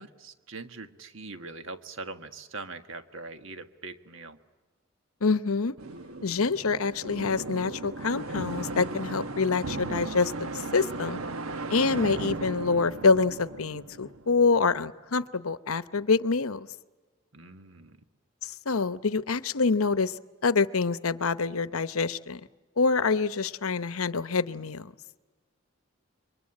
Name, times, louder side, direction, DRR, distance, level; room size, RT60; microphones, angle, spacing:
voice 1, 0.0-4.4 17.3-18.0, right 3 dB, 70° right, 8 dB, 1.6 m, -42 dB
voice 2, 5.2-5.8 6.2-11.2 11.7-16.7 18.4-20.1 20.4-22.4 22.8-24.9, left 4 dB, 90° left, 14 dB, 0.8 m, -26 dB
sound 1, 5.8-14.6, right 2 dB, 90° right, 1.3 m, -36 dB
28.0 x 23.5 x 8.8 m, 1.3 s
head